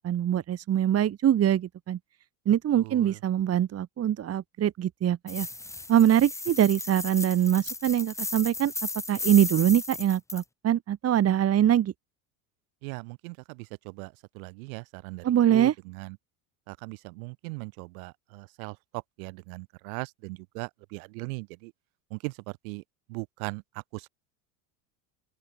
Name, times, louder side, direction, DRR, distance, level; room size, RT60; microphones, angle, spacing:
voice 1, 0.0-2.0 2.4-5.5 5.9-8.7 9.1-11.9 15.2-15.7, right 10 dB, 35° right, 1.8 m, -23 dB
voice 2, 2.5-3.2 12.8-16.2 16.7-21.7 22.1-22.8 23.1-24.1, right 30 dB, 75° right, 3.8 m, -39 dB
sound 1, 5.3-10.4, left 2 dB, 5° left, 0.8 m, -35 dB
open air
supercardioid pair, 110°, 42 cm